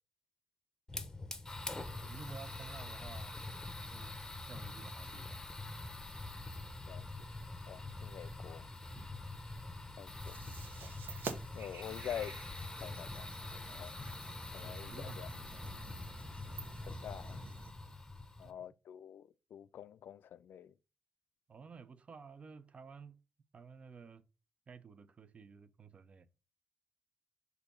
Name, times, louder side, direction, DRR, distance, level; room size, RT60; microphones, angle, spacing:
Fire, 0.9-18.5, left 2 dB, 15° left, 0.7 m, -45 dB
voice 1, 1.8-3.4 3.9-4.2 4.4-5.4 8.9-9.1 14.6-15.8 16.4-16.6 18.4-18.6 21.5-23.2 23.5-24.2 24.7-26.3, right 5 dB, 35° right, 0.5 m, -53 dB
voice 2, 7.6-8.7 10.0-10.6 11.5-12.3 12.8-13.3 13.7-14.0 14.5-15.3 16.9-17.4 18.4-20.7, left 9 dB, 80° left, 0.4 m, -46 dB
sound 1, 10.2-17.7, right 5 dB, 70° right, 1.0 m, -50 dB
6.6 x 2.7 x 5.3 m
wide cardioid pair, 145°, 4 cm